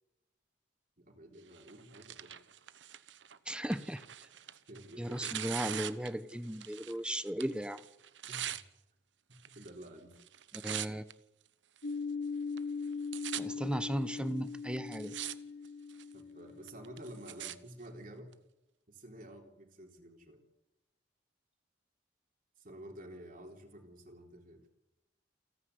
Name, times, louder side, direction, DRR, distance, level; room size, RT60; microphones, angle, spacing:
voice 1, 1.0-2.3 4.7-5.4 6.0-6.1 8.3-8.6 9.5-10.1 16.1-18.3 18.9-20.4 22.6-24.6, right 1 dB, 50° right, 2 dB, 3.6 m, -50 dB
Tearing, 1.5-7.0 7.3-8.6 9.4-9.9 10.2-11.1 11.8-11.9 12.6-12.7 12.8-13.4 14.2-14.3 14.8-15.4 15.7-16.1 16.7-17.6 18.3-18.4, right 11 dB, 80° right, 1.0 m, -42 dB
voice 2, 3.5-4.0 5.0-7.8 10.5-11.0 13.4-15.2, equal, 5° right, 13 dB, 0.9 m, -36 dB
sound 1, 11.8-17.3, left 4 dB, 75° left, 1.1 m, -40 dB
29.0 x 9.8 x 9.7 m, 0.97 s
head